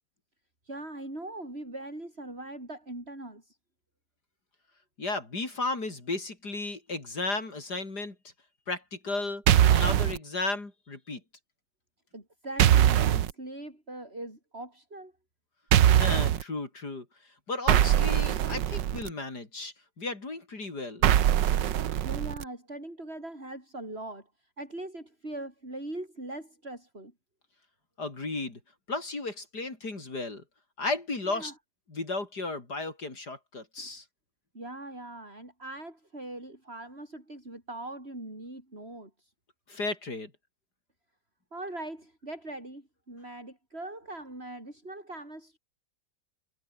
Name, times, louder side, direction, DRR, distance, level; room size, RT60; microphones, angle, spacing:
voice 1, 0.6-3.6 12.1-15.1 22.0-24.3 24.6-27.1 31.3-31.5 33.8-33.9 34.5-39.3 41.5-45.6, right 1 dB, 35° right, 7.6 m, -41 dB
voice 2, 5.0-8.2 8.7-11.2 15.9-17.1 17.5-21.1 28.0-28.6 28.9-30.4 30.8-31.5 31.9-34.0 39.7-40.3, left 3 dB, 65° left, 5.0 m, -34 dB
sound 1, 9.5-10.2 12.6-13.3 15.7-16.4 17.7-19.1 21.0-22.4, right 11 dB, 85° right, 1.7 m, -22 dB
omnidirectional pair, 1.9 m